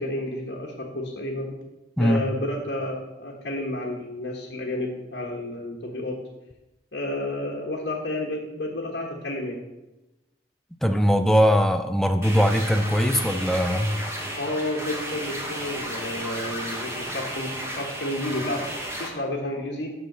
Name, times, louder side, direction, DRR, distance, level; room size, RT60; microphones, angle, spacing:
voice 1, 0.0-1.5 2.0-6.2 6.9-9.6 14.3-18.7 19.0-19.9, left 1 dB, 75° left, -2 dB, 1.4 m, -31 dB
voice 2, 10.8-14.0, equal, ahead, 7 dB, 0.6 m, -21 dB
sound 1, 12.2-19.1, equal, 15° right, 1.5 m, -33 dB
6.6 x 5.6 x 7.3 m, 1.0 s
head